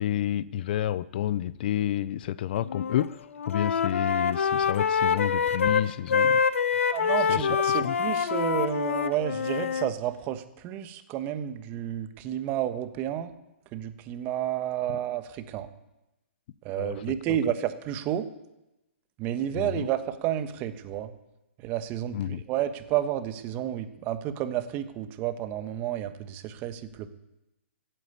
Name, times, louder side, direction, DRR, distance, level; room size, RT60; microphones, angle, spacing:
voice 1, 0.0-3.2 3.5-6.4 7.3-8.0 16.8-17.0 17.3-17.4 19.5-19.9 22.1-22.4, left 11 dB, 45° left, 0.5 m, -30 dB
Wind instrument woodwind instrument, 2.6-3.1 3.3-9.9, left 6 dB, 85° left, 0.9 m, -26 dB
voice 2, 6.9-13.3 13.7-15.7 16.6-18.3 19.2-21.1 21.6-27.1, right 11 dB, 25° right, 1.2 m, -31 dB
15.0 x 9.2 x 8.4 m
hypercardioid pair, 150°, 7 cm